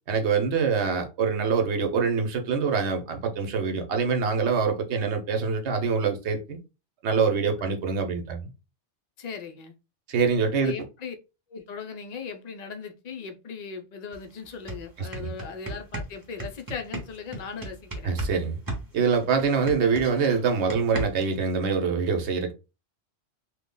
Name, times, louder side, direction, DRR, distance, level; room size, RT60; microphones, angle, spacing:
voice 1, 0.1-6.6 7.0-8.5 10.1-10.7 15.0-15.3 18.0-18.6 18.9-22.5, right 5 dB, 70° right, 1.0 m, -25 dB
voice 2, 9.2-9.7 10.6-11.2 11.5-18.1, left 6 dB, 55° left, 0.5 m, -38 dB
sound 1, 14.1-14.2 14.5-18.4 18.7-21.4, right 2 dB, 20° right, 0.7 m, -34 dB
3.1 x 2.1 x 3.6 m
omnidirectional pair, 1.2 m